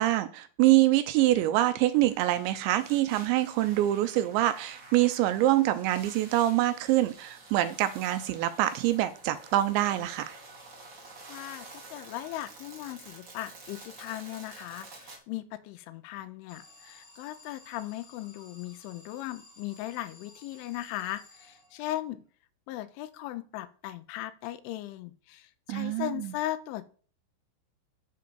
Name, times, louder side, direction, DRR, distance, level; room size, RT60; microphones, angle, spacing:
voice 1, 0.0-10.4 25.7-26.3, right 15 dB, 80° right, 11 dB, 2.7 m, -25 dB
sound 1, 1.9-15.2, right 3 dB, 30° right, 2.4 m, -50 dB
voice 2, 11.3-22.2 22.7-26.9, left 14 dB, 85° left, 13 dB, 3.1 m, -38 dB
Alarm, 16.5-22.0, left 2 dB, 30° left, 5.0 m, -55 dB
8.3 x 6.4 x 6.9 m, 0.43 s
omnidirectional pair, 5.5 m